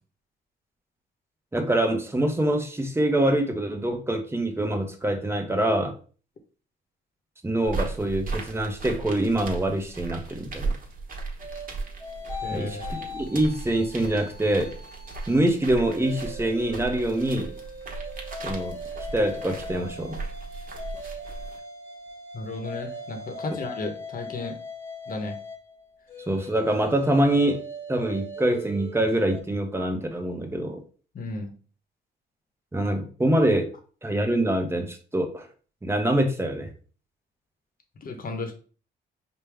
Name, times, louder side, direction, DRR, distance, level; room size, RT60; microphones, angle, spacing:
voice 1, 1.5-5.9 7.4-10.8 12.5-14.7 15.3-17.5 18.4-18.8 19.1-20.2 26.3-27.6 27.9-30.8 32.7-33.7 34.0-35.5 35.8-36.7, right 1 dB, 10° right, 5 dB, 0.8 m, -25 dB
sound 1, 7.7-21.6, right 3 dB, 45° right, 1.2 m, -36 dB
sound 2, 11.4-15.4 15.9-29.4, equal, 10° left, 1.1 m, -40 dB
voice 2, 12.4-12.9 22.3-24.6 25.1-25.4 31.1-31.5 38.0-38.5, left 3 dB, 45° left, 6 dB, 0.9 m, -34 dB
5.0 x 2.2 x 3.4 m, 0.40 s
cardioid pair, 90°, 20 cm